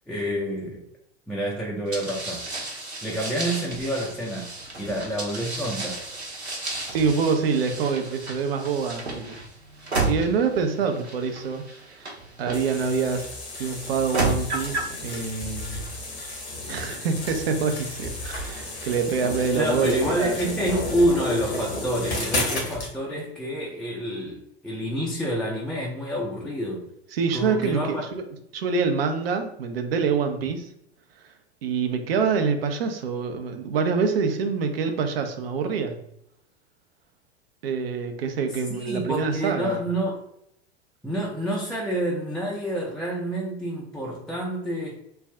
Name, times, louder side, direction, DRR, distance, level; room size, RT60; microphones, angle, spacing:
voice 1, 0.1-0.8 1.3-2.4 3.0-4.5 4.8-6.0 19.5-26.9 27.3-28.0 38.7-40.2 41.0-45.0, equal, ahead, -4 dB, 0.4 m, -28 dB
sound 1, 1.9-13.2 13.9-15.0, right 2 dB, 90° right, 0.9 m, -32 dB
voice 2, 6.9-9.3 10.1-11.7 12.0-13.3 13.6-15.8 16.7-20.4 27.1-28.2 28.5-30.7 31.6-36.0 37.6-39.8, right 5 dB, 65° right, 7 dB, 0.6 m, -26 dB
sound 2, 12.5-22.9, left 2 dB, 75° left, 1.2 m, -33 dB
3.3 x 2.3 x 3.3 m, 0.75 s
figure-of-eight pair, 85°, 32 cm